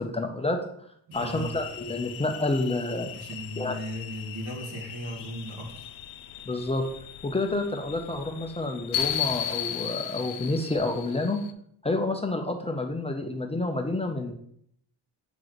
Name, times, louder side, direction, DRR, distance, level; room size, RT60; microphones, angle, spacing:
voice 1, 0.0-0.9 1.1-3.1 3.6-3.8 6.4-6.8 7.2-11.4 11.8-14.3, left 2 dB, 15° left, 3 dB, 0.4 m, -29 dB
sound 1, 1.1-11.5, left 10 dB, 80° left, 0.6 m, -36 dB
voice 2, 1.1-1.5 3.1-5.9, equal, 80° right, -3 dB, 2.4 m, -37 dB
7.7 x 3.1 x 4.0 m, 0.68 s
cardioid pair, 125°, 45 cm